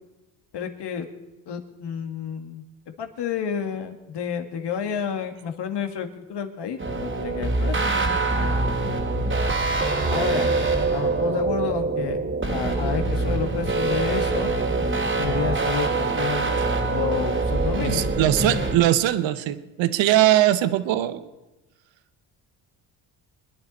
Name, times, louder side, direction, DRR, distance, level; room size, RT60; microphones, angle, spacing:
voice 1, 0.5-1.1 1.5-2.6 3.0-8.6 10.1-10.5 10.9-12.2 12.5-14.5 15.2-16.5 16.9-18.1, left 7 dB, 60° left, 6 dB, 1.9 m, -30 dB
sound 1, 6.8-18.8, right 3 dB, 25° right, 2.1 m, -24 dB
voice 2, 17.8-21.3, right 13 dB, 75° right, 13 dB, 0.9 m, -21 dB
24.5 x 10.5 x 4.2 m, 1.1 s
cardioid pair, 100°, 46 cm